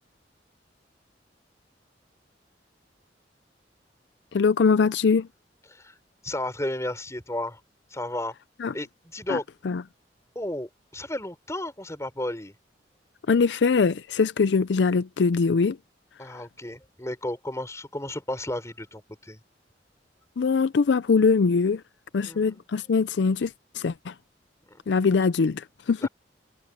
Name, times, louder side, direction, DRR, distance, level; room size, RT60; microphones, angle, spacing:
voice 1, 4.3-5.3 8.6-8.7 9.3-9.4 9.6-9.8 13.3-15.8 20.4-21.8 22.1-24.1 24.9-26.1, left 5 dB, 75° left, 0.5 m, -22 dB
voice 2, 6.2-7.6 7.9-8.3 8.7-9.4 10.3-12.5 16.2-19.4 22.2-22.6 24.7-24.8 26.0-26.1, left 1 dB, 15° left, 4.9 m, -33 dB
head